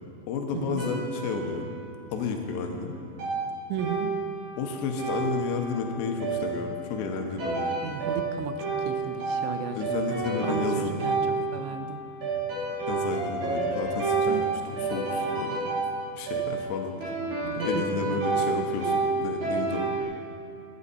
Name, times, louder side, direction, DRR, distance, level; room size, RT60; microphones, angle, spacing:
voice 1, 0.3-1.7 2.1-3.0 4.6-7.7 9.7-11.0 12.9-14.4 14.7-15.7 16.1-17.1 17.5-19.9, left 4 dB, 80° left, 3 dB, 2.9 m, -32 dB
sound 1, 0.8-2.3 3.2-20.0, right 3 dB, 45° right, 3.6 m, -30 dB
voice 2, 3.7-4.1 7.8-9.8 10.1-12.0 14.3-14.4 17.4-18.2, right 7 dB, 90° right, 8 dB, 3.1 m, -35 dB
14.0 x 11.0 x 4.2 m, 2.5 s
omnidirectional pair, 5.2 m